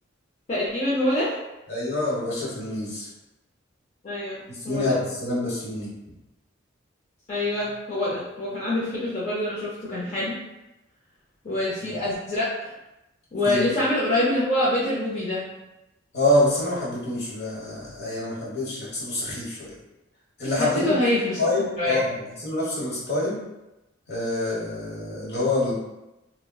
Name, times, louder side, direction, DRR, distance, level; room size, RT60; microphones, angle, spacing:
voice 1, 0.5-1.3 4.0-5.0 7.3-10.4 11.4-12.7 13.3-15.5 20.6-21.4 21.8-22.0, left 1 dB, 35° left, -8 dB, 0.5 m, -25 dB
voice 2, 1.7-3.1 4.5-5.9 11.8-12.0 13.4-13.7 16.1-19.7 20.4-21.0 21.4-23.4 24.1-25.7, left 1 dB, 60° left, -6 dB, 1.1 m, -26 dB
3.6 x 2.1 x 2.2 m, 0.95 s
head